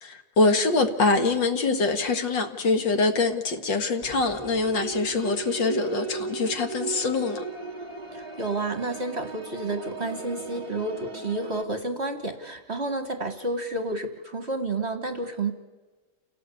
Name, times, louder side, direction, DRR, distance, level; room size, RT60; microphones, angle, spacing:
voice 1, 0.0-7.4, left 3 dB, 60° left, 7 dB, 2.4 m, -24 dB
sound 1, 4.0-11.6, right 5 dB, 20° right, 0.9 m, -37 dB
voice 2, 8.1-15.5, right 2 dB, 35° right, 7 dB, 1.4 m, -30 dB
28.5 x 17.5 x 8.4 m, 1.3 s
omnidirectional pair, 2.3 m